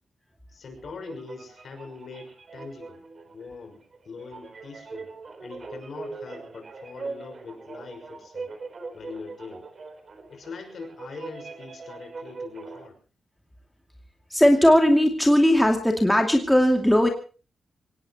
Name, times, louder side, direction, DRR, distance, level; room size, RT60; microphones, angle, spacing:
voice 1, 0.5-5.1 5.4-8.5 8.9-9.6 10.3-13.0, left 4 dB, 50° left, 6 dB, 5.9 m, -42 dB
sound 1, 0.8-12.9, right 3 dB, 35° right, 3.9 m, -41 dB
voice 2, 14.3-17.1, equal, 5° left, 2 dB, 2.6 m, -18 dB
25.0 x 19.0 x 3.0 m, 0.38 s
wide cardioid pair, 165°, 0 cm